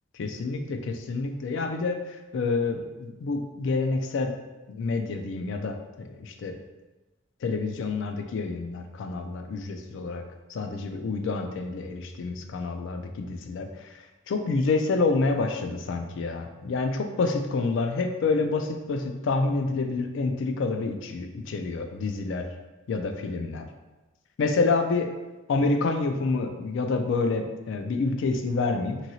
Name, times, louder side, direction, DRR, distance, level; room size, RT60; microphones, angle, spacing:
voice 1, 0.1-2.0 2.3-4.3 4.7-6.6 7.4-10.2 10.5-14.0 14.3-22.5 22.9-23.7 24.4-25.1 25.5-29.0, left 3 dB, 70° left, 5 dB, 0.4 m, -28 dB
3.0 x 2.7 x 2.6 m, 1.1 s
head